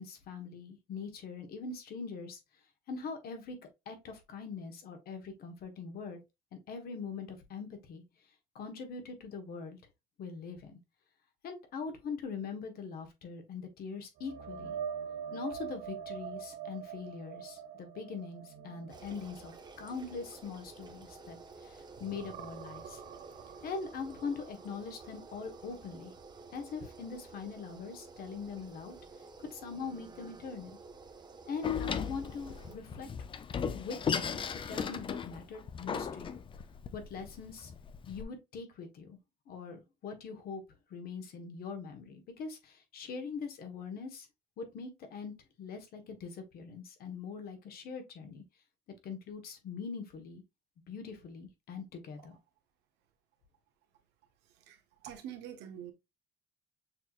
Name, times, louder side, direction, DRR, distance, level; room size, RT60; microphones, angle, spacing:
voice 1, 0.0-2.4 2.9-3.6 3.9-6.2 6.5-8.0 8.5-9.8 10.2-10.8 11.4-14.7 15.3-23.0 23.6-26.1 26.5-29.0 29.5-30.7 31.4-33.1 33.7-34.4 34.7-36.4 36.9-37.7 38.1-39.2 39.5-40.6 40.9-44.3 44.6-48.4 49.0-50.4 50.9-52.4, left 5 dB, 65° left, 1.2 m, -42 dB
sound 1, 14.2-21.6 21.9-25.8 26.2-26.4 29.7-29.8, right 7 dB, 65° right, 0.7 m, -45 dB
sound 2, 18.9-32.8, right 4 dB, 25° right, 0.7 m, -52 dB
Door, 31.6-38.2, left 7 dB, 30° left, 0.4 m, -36 dB
voice 2, 54.7-55.9, right 10 dB, 90° right, 0.9 m, -45 dB
6.4 x 2.9 x 2.4 m
cardioid pair, 110°, 17 cm